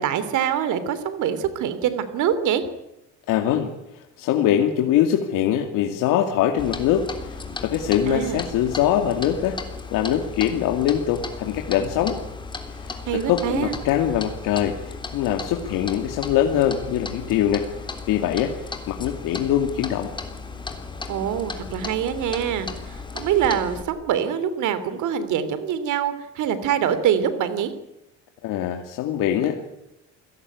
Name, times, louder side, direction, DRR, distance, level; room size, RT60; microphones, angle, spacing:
voice 1, 0.0-2.6 8.1-8.4 13.0-13.7 21.1-27.7, right 9 dB, 70° right, 13 dB, 3.2 m, -24 dB
voice 2, 3.3-3.7 3.9-9.6 9.9-12.2 12.7-17.7 18.1-18.5 18.9-20.1 28.4-29.6, left 10 dB, 90° left, 4 dB, 2.5 m, -23 dB
Clock, 6.6-23.8, left 4 dB, 15° left, 3.5 m, -35 dB
28.0 x 18.0 x 9.5 m, 0.87 s
cardioid pair, 155°, 31 cm